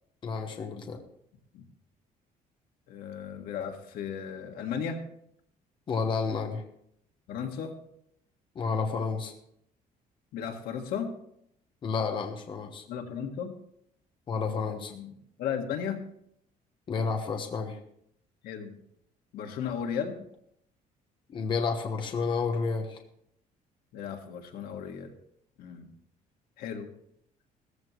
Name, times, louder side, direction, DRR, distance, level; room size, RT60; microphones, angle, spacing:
voice 1, 0.2-1.0 5.9-6.6 8.5-9.3 11.8-12.8 14.3-14.9 16.9-17.8 21.3-23.0, left 4 dB, 35° left, 4 dB, 1.2 m, -30 dB
voice 2, 2.9-5.0 7.3-7.8 10.3-11.1 12.9-13.5 14.9-16.1 18.4-18.8 19.3-20.2 23.9-25.1 25.6-25.9 26.6-26.9, left 7 dB, 90° left, 4 dB, 1.9 m, -35 dB
15.5 x 14.0 x 3.2 m, 0.72 s
cardioid pair, 175°, 15 cm